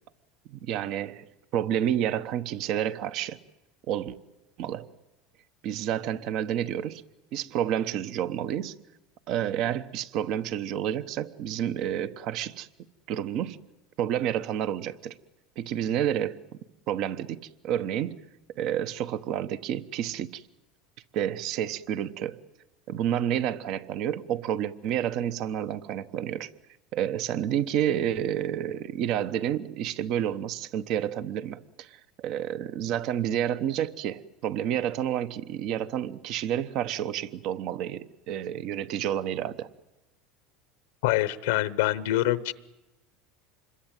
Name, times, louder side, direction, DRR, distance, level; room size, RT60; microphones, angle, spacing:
voice 1, 0.5-1.2 1.5-3.4 3.9-4.2 4.6-4.9 5.6-7.0 7.3-8.8 9.3-12.7 13.1-13.6 14.0-15.2 15.6-16.4 16.9-18.2 18.6-20.4 21.1-22.4 22.9-26.5 26.9-39.7, right 10 dB, 55° right, 1.0 m, -29 dB
voice 2, 41.0-42.5, left 15 dB, 85° left, 0.9 m, -25 dB
26.5 x 22.0 x 9.1 m
supercardioid pair, 130°, 0 cm